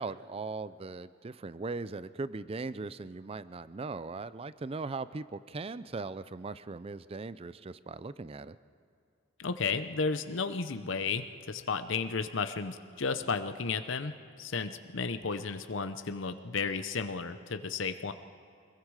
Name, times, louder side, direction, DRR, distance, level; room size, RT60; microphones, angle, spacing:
voice 1, 0.0-8.6, right 3 dB, 30° right, 15 dB, 0.4 m, -39 dB
voice 2, 9.4-18.1, left 4 dB, 70° left, 9 dB, 0.8 m, -33 dB
24.5 x 21.5 x 4.8 m, 2.5 s
head